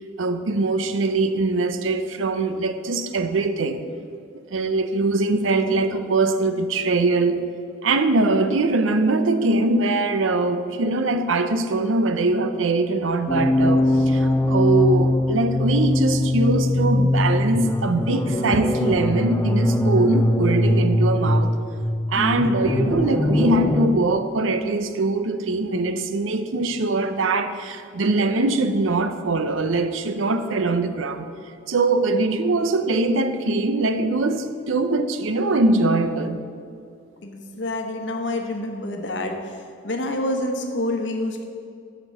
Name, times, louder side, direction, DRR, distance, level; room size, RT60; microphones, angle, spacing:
voice 1, 0.2-3.8 4.5-7.4 7.8-21.5 22.1-31.3 31.7-36.4, right 2 dB, 90° right, 0.6 m, -22 dB
sound 1, 13.3-23.9, left 1 dB, 15° left, 0.4 m, -21 dB
voice 2, 37.2-39.6 39.8-41.4, left 1 dB, 65° left, 1.0 m, -27 dB
7.7 x 5.2 x 7.4 m
head